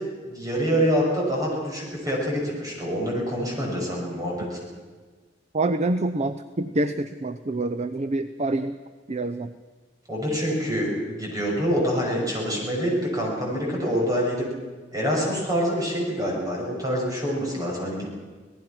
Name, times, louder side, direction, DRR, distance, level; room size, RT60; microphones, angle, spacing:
voice 1, 0.2-4.6 10.1-14.5 14.9-18.0, equal, 20° right, -2 dB, 6.7 m, -26 dB
voice 2, 5.5-8.8 9.1-9.5, right 2 dB, 35° right, 9 dB, 0.7 m, -26 dB
26.0 x 18.5 x 6.0 m, 1.4 s
head